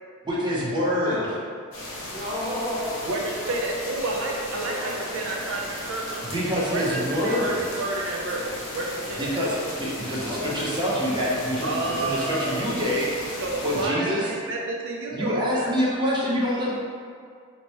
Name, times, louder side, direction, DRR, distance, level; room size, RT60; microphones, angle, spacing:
voice 1, 0.2-1.4 6.3-7.6 9.2-14.3 15.1-16.7, equal, 20° right, -6 dB, 0.6 m, -26 dB
voice 2, 1.0-1.4 1.9-3.1 3.4-3.6 4.6-5.2 10.2-11.4, left 1 dB, 15° left, -9 dB, 0.8 m, -34 dB
sound 1, 1.7-13.9, left 1 dB, 60° left, 0.7 m, -36 dB
voice 3, 3.0-6.2 6.7-9.3 11.6-12.8 13.4-15.8, right 2 dB, 60° right, -1 dB, 0.4 m, -30 dB
2.9 x 2.2 x 4.1 m, 2.1 s
head